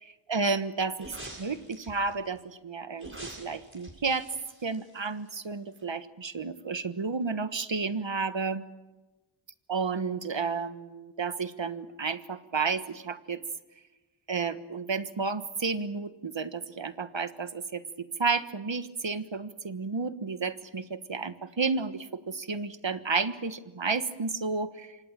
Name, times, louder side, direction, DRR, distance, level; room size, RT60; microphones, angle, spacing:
voice 1, 0.3-4.3 4.6-8.6 9.7-13.4 14.3-25.0, right 4 dB, 70° right, 11 dB, 1.5 m, -32 dB
sound 1, 1.0-2.1 3.0-5.4 5.8-5.9, right 1 dB, 25° right, 6.8 m, -45 dB
27.0 x 25.0 x 7.5 m, 1.2 s
wide cardioid pair, 60°, 47 cm